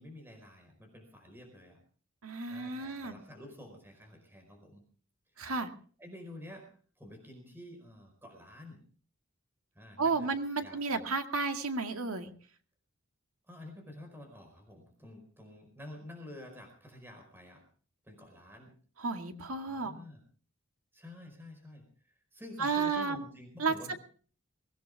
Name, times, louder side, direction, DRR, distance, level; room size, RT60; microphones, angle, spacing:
voice 1, 0.0-1.8 2.5-4.8 5.4-5.5 6.0-6.7 7.0-8.8 9.7-10.3 10.6-11.0 13.5-17.6 18.0-18.7 19.7-20.2 20.9-24.0, left 1 dB, 10° right, 4 dB, 4.9 m, -50 dB
voice 2, 2.2-3.2 5.4-5.7 10.0-12.3 19.0-19.9 22.6-23.2 23.6-24.0, right 4 dB, 85° right, 6 dB, 2.1 m, -32 dB
23.0 x 17.5 x 3.5 m, 0.43 s
head